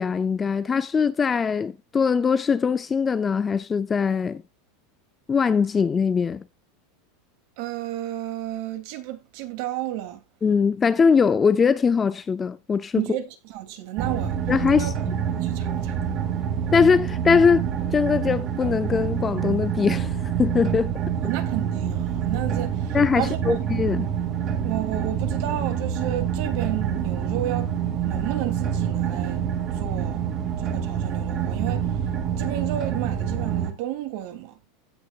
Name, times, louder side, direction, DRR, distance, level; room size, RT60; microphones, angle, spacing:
voice 1, 0.0-4.4 5.3-6.4 10.4-13.0 14.5-14.9 16.7-17.6 17.9-20.9 22.9-24.1, left 6 dB, 15° left, 0.4 m, -21 dB
voice 2, 7.6-10.2 13.0-14.4 14.7-14.9 15.3-16.0 21.2-23.6 24.6-27.7 28.0-29.5 29.7-30.3 30.6-31.9 32.4-34.6, right 13 dB, 55° right, 2.8 m, -32 dB
sound 1, 14.0-33.7, right 8 dB, 30° right, 2.3 m, -27 dB
16.5 x 6.7 x 2.4 m
supercardioid pair, 170°, 0 cm